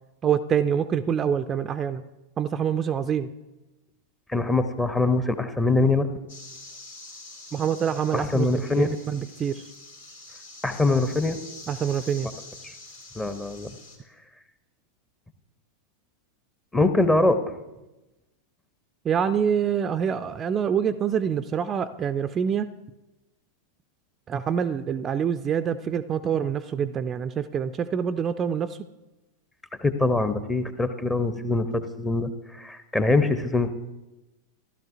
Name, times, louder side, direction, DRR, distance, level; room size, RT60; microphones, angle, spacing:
voice 1, 0.2-2.0 2.4-3.3 7.5-9.7 11.7-12.3 19.0-22.7 24.3-28.8, right 8 dB, 25° right, 10 dB, 0.4 m, -26 dB
voice 2, 4.3-6.1 8.1-8.9 10.6-11.4 12.6-12.7 13.2-13.7 16.7-17.4 29.8-33.7, left 2 dB, 10° left, 10 dB, 0.7 m, -23 dB
sound 1, 6.3-14.0, left 2 dB, 65° left, 2.8 m, -45 dB
15.5 x 12.0 x 2.5 m, 1.0 s
figure-of-eight pair, 90°, 0 cm